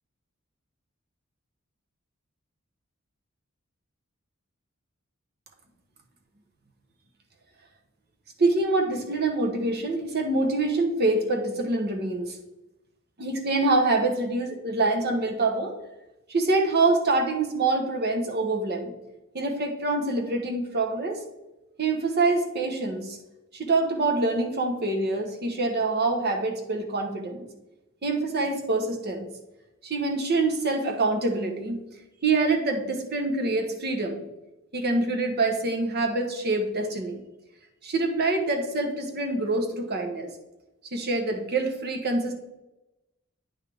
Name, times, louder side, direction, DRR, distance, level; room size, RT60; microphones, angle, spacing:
voice 1, 8.4-12.4 13.2-15.8 16.3-18.9 19.3-21.2 21.8-23.2 23.5-27.5 28.0-29.3 29.8-31.8 32.2-34.2 34.7-37.2 37.8-40.3 40.9-42.4, right 2 dB, 50° right, 4 dB, 1.1 m, -25 dB
9.2 x 5.6 x 3.4 m, 1.0 s
head